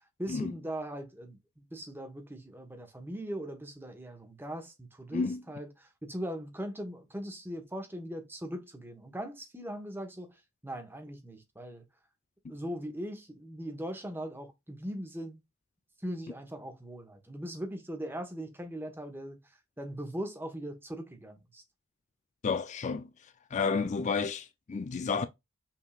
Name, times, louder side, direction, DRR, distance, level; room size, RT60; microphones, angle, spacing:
voice 1, 0.2-10.3 10.6-11.8 12.5-15.4 16.0-19.4 19.8-21.6 23.7-24.0, equal, 10° right, 1.1 m, -40 dB
voice 2, 22.4-25.2, left 4 dB, 35° left, 0.3 m, -31 dB
5.7 x 3.7 x 2.3 m
head